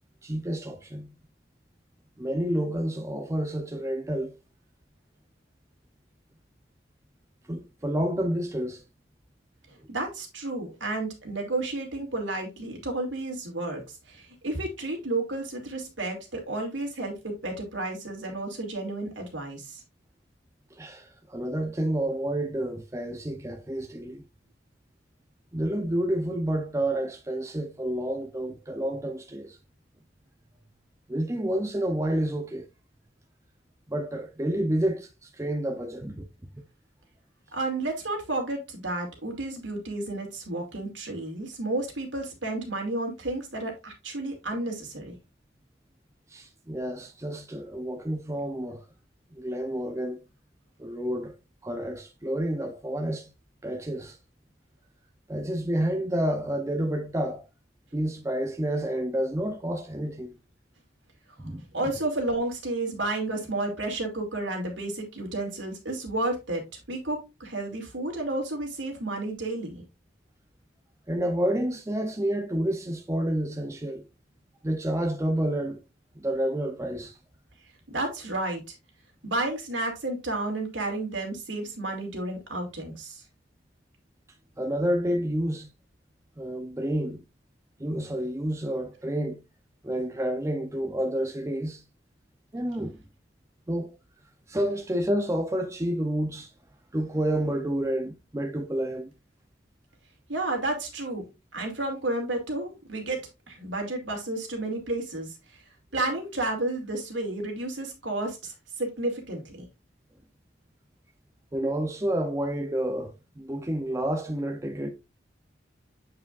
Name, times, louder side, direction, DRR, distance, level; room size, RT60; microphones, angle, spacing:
voice 1, 0.2-1.1 2.2-4.3 7.5-8.8 20.7-24.2 25.5-29.6 31.1-32.7 33.9-36.3 46.3-48.8 49.3-50.2 50.8-51.4 51.6-53.3 53.6-54.2 55.3-57.4 57.9-60.4 61.4-61.7 71.1-74.1 74.6-75.8 76.2-77.2 84.6-85.7 86.4-87.2 87.8-89.4 89.8-91.8 92.5-93.0 93.7-93.9 94.5-96.5 96.9-99.1 111.5-114.9, right 1 dB, 15° right, 0.6 m, -29 dB
voice 2, 9.7-19.8 37.5-45.1 61.7-69.8 77.9-78.7 79.2-83.2 100.3-101.2 101.5-105.6 105.9-109.6, right 2 dB, 80° right, 2.4 m, -32 dB
8.2 x 4.9 x 2.5 m
head